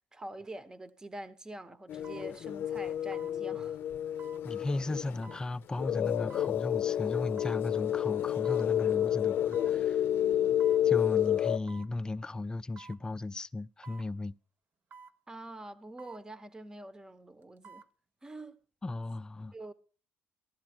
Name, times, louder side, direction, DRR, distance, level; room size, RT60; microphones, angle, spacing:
voice 1, 0.1-3.8 15.3-17.8 18.2-18.6 19.5-19.7, right 1 dB, 15° right, 1.1 m, -45 dB
sound 1, 0.9-1.0 2.0-2.3 3.1-3.4 4.2-4.4 5.2-5.5 6.3-6.5 7.4-7.6 8.5-8.7 9.5-9.8 10.6-10.9 11.7-11.9 12.8-13.0 13.8-14.1 14.9-15.2 16.0-16.2 17.4-17.9 18.3-18.4, right 5 dB, 45° right, 0.9 m, -52 dB
sound 2, 1.9-5.4 5.8-11.6, left 11 dB, 60° left, 0.6 m, -30 dB
voice 2, 4.4-10.1 10.8-14.3 18.8-19.5, left 2 dB, 20° left, 0.5 m, -36 dB
15.5 x 12.0 x 4.5 m
cardioid pair, 115°, 4 cm